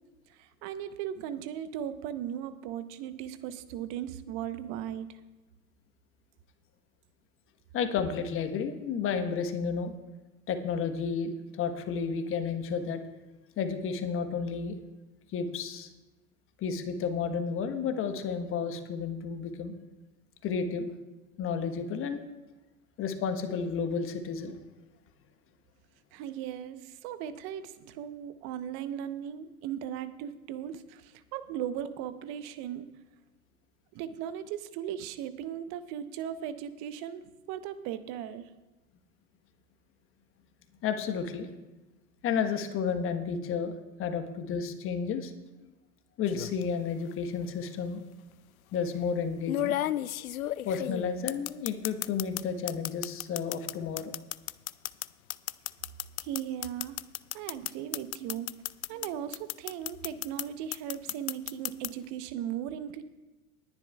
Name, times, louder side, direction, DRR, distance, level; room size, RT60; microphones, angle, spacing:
voice 1, 0.3-5.1 26.1-32.9 33.9-38.5 56.2-57.0 57.3-58.5 58.9-63.0, right 10 dB, 40° right, 12 dB, 0.9 m, -37 dB
voice 2, 7.7-9.9 10.5-13.1 13.6-14.8 15.3-15.9 16.6-19.7 20.4-20.9 21.4-22.2 23.0-24.5 40.8-41.5 42.2-43.7 44.0-45.3 46.2-48.0 48.7-49.8 50.6-54.1, left 6 dB, 30° left, 7 dB, 1.2 m, -32 dB
sound 1, 46.3-46.6 47.8-47.9 49.5-52.4 52.7-59.1 59.3-60.4 60.7-61.9, left 13 dB, 70° left, 0.5 m, -33 dB
20.0 x 10.5 x 2.4 m, 1.1 s
figure-of-eight pair, 95°, 43 cm